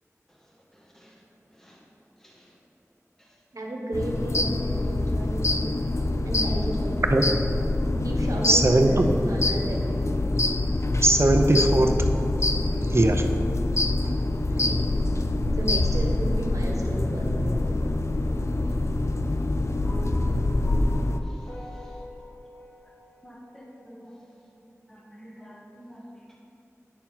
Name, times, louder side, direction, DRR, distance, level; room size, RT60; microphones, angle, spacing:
voice 1, 0.3-2.6 3.2-3.4 21.2-22.0 23.2-24.3 24.7-26.4, equal, 10° left, -3 dB, 1.3 m, -50 dB
voice 2, 3.5-5.7 6.2-7.6 8.0-10.2 14.6-14.8 15.6-17.6 18.2-18.4, right 1 dB, 80° right, -1 dB, 1.2 m, -33 dB
sound 1, 3.9-21.2, left 2 dB, 55° left, 0.4 m, -25 dB
voice 3, 8.5-9.1 11.0-12.1 12.4-12.6 12.9-13.2 14.0-14.1, right 1 dB, 50° right, 5 dB, 0.6 m, -20 dB
sound 2, 19.8-24.3, left 1 dB, 90° left, 1.7 m, -45 dB
9.0 x 4.5 x 5.6 m, 2.7 s
wide cardioid pair, 50°, 6 cm